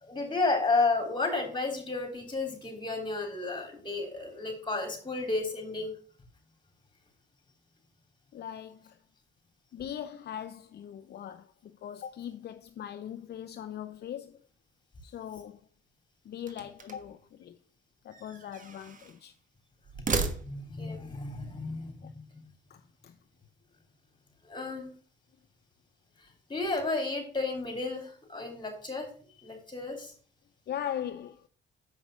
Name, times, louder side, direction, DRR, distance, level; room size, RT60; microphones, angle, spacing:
voice 1, 0.0-5.9 20.4-22.4 24.4-24.9 26.5-29.1 29.4-30.1, left 3 dB, 25° left, 3.4 m, -32 dB
voice 2, 8.3-9.0 9.7-14.4 15.0-15.6 16.2-17.6 18.0-19.3 22.0-22.1 22.7-23.2 30.7-31.5, left 10 dB, 55° left, 0.6 m, -40 dB
sound 1, 16.4-17.2 18.1-19.2 19.8-20.9, right 4 dB, 40° right, 1.4 m, -35 dB
7.4 x 5.4 x 6.1 m
cardioid pair, 90°, 20 cm